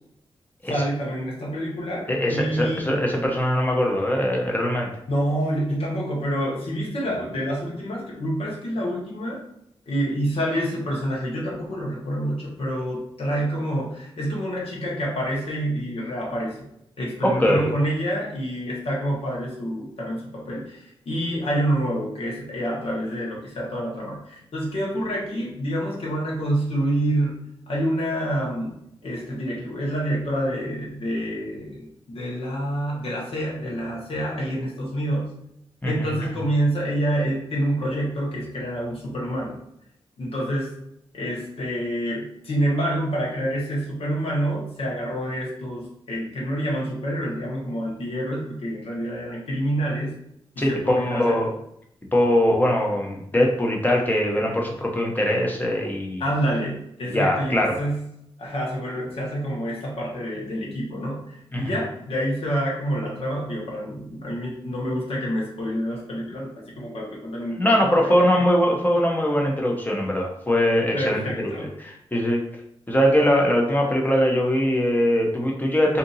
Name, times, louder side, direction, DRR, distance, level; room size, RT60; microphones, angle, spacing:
voice 1, 0.7-3.0 5.1-9.4 9.9-16.6 17.0-27.3 27.7-28.8 29.0-35.3 35.8-39.5 40.2-40.7 41.1-50.2 50.5-51.4 56.2-58.0 58.4-67.8 68.3-68.4 70.9-71.7, equal, 70° left, -4 dB, 1.1 m, -27 dB
voice 2, 2.1-4.9 17.2-17.8 35.8-36.1 50.6-51.5 52.1-56.2 57.1-57.8 61.5-61.7 67.5-71.2 71.6-72.4 72.9-76.0, equal, 15° left, 0 dB, 0.8 m, -21 dB
2.8 x 2.6 x 3.9 m, 0.76 s
wide cardioid pair, 85°, 10 cm